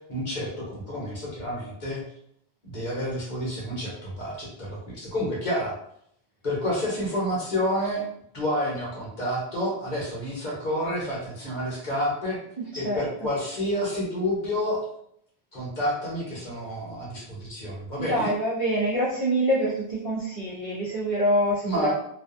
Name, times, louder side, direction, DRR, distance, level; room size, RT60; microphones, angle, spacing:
voice 1, 0.1-2.0 2.6-5.7 6.4-8.0 8.3-12.4 12.8-14.8 15.5-18.3 21.6-21.9, equal, 50° left, -4 dB, 0.9 m, -29 dB
voice 2, 12.7-13.0 18.0-21.9, equal, 40° right, -8 dB, 0.5 m, -25 dB
2.4 x 2.3 x 2.4 m, 0.70 s
omnidirectional pair, 1.1 m